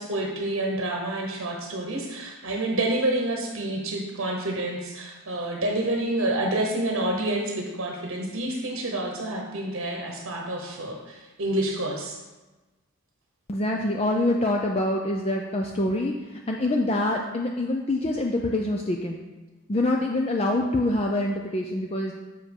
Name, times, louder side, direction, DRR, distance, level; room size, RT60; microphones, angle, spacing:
voice 1, 0.0-12.2, right 1 dB, 60° right, 0 dB, 1.0 m, -28 dB
voice 2, 13.5-16.1 16.5-19.2 19.7-22.1, left 1 dB, 25° left, 1 dB, 0.4 m, -25 dB
7.1 x 5.0 x 5.3 m, 1.2 s
head